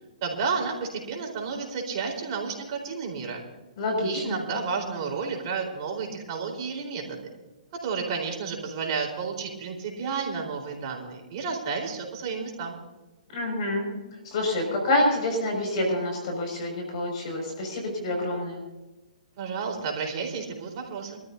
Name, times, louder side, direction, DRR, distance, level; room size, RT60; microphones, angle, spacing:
voice 1, 0.2-3.4 4.0-7.2 7.8-12.8 19.4-21.2, right 5 dB, 40° right, 1 dB, 4.3 m, -31 dB
voice 2, 3.8-4.4 13.3-13.9 14.2-18.6, left 1 dB, 50° left, 1 dB, 6.0 m, -27 dB
25.0 x 13.5 x 2.8 m, 1.1 s
hypercardioid pair, 130°, 4 cm